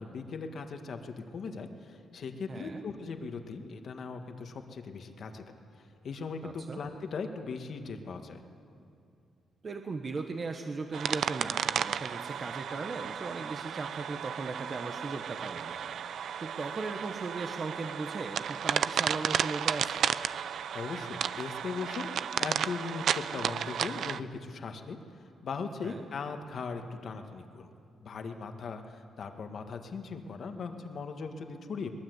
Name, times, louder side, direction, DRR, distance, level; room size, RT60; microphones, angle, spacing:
voice 1, 0.0-5.4 6.0-8.4 20.7-25.0 25.4-27.7 28.0-31.9, left 4 dB, 55° left, 5 dB, 1.8 m, -39 dB
voice 2, 2.5-2.8 6.4-6.8 9.6-15.8 16.4-20.1 25.8-26.0, right 3 dB, 40° right, 4 dB, 1.3 m, -38 dB
sound 1, 10.9-24.2, right 8 dB, 70° right, 0.6 m, -33 dB
22.0 x 20.0 x 8.1 m, 2.5 s
cardioid pair, 120°, 0 cm